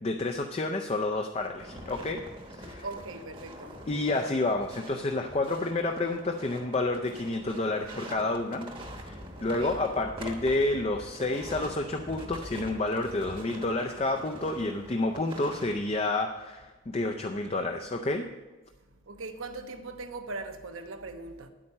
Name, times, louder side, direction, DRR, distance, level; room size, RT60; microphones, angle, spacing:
voice 1, 0.0-2.2 2.6-2.9 3.9-8.7 9.0-18.3, left 2 dB, 30° left, 0.5 m, -29 dB
sound 1, 1.4-15.7, equal, 25° right, 1.0 m, -44 dB
voice 2, 2.8-3.8 9.4-9.8 19.1-21.5, right 3 dB, 85° right, 1.0 m, -40 dB
9.8 x 8.7 x 5.5 m
head